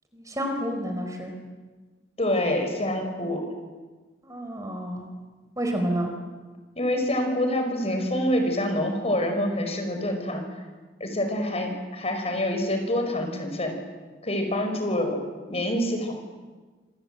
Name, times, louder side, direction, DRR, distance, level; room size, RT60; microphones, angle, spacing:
voice 1, 0.1-1.3 4.2-5.1 5.6-6.1, equal, 20° right, 3 dB, 4.6 m, -29 dB
voice 2, 2.2-3.4 6.8-10.4 11.0-13.8 14.2-15.2 15.5-16.1, left 1 dB, 35° left, 4 dB, 5.5 m, -26 dB
27.0 x 26.5 x 7.9 m, 1.3 s
head